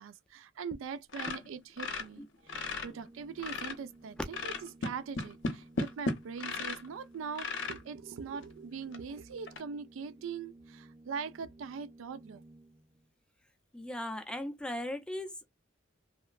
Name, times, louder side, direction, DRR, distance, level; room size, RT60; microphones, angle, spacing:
voice 1, 0.0-4.5 4.8-12.4, right 6 dB, 85° right, 0.3 m, -42 dB
sound 1, 1.1-2.9 3.2-3.9 4.3-6.9 7.3-7.8 8.4-8.5 8.9-9.0 9.5-9.6, left 3 dB, 65° left, 0.7 m, -35 dB
Organ, 2.4-13.1, right 2 dB, 35° right, 0.7 m, -56 dB
voice 2, 13.7-15.5, left 1 dB, 5° left, 0.4 m, -38 dB
3.0 x 2.0 x 2.3 m
head